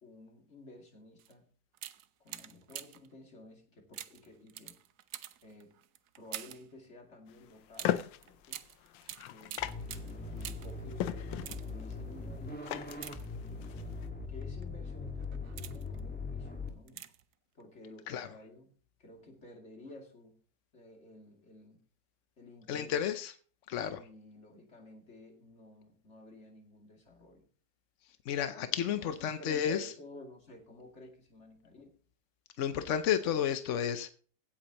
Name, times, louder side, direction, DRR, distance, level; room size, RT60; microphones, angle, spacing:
voice 1, 0.0-1.4 2.2-4.8 5.4-5.7 6.2-8.6 9.3-9.6 10.1-13.0 14.3-17.0 17.5-18.7 19.0-20.3 20.7-21.8 22.4-23.1 23.9-27.5 29.0-31.8, left 1 dB, 35° left, 2.8 m, -53 dB
sound 1, 1.2-1.3 1.7-3.1 3.9-6.7 7.7-10.8 11.3-11.9 12.9-13.7 14.4-14.6 15.2-16.0 16.9-17.3 17.6-17.7, right 12 dB, 65° right, 1.1 m, -47 dB
sound 2, 7.3-14.1, left 12 dB, 90° left, 1.4 m, -39 dB
sound 3, 9.6-16.7, left 3 dB, 5° left, 1.4 m, -41 dB
voice 2, 22.7-23.3 23.7-24.0 28.3-29.9 32.6-34.1, left 9 dB, 65° left, 0.7 m, -32 dB
16.5 x 8.6 x 2.9 m
omnidirectional pair, 2.0 m